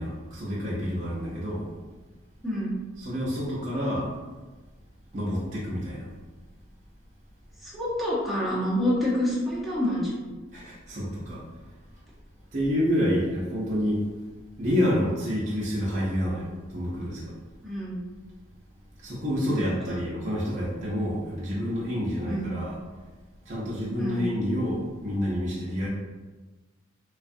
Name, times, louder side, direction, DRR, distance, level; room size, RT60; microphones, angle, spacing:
voice 1, 0.0-1.7 3.0-4.1 5.1-6.1 10.5-11.4 12.5-14.0 14.6-16.5 16.7-17.3 19.0-22.8 23.5-25.9, equal, 40° right, -7 dB, 0.5 m, -28 dB
voice 2, 7.6-10.2 17.6-18.0 19.6-20.2 22.2-22.4 24.0-24.2, left 1 dB, ahead, -8 dB, 0.7 m, -28 dB
2.6 x 2.3 x 2.4 m, 1.3 s
head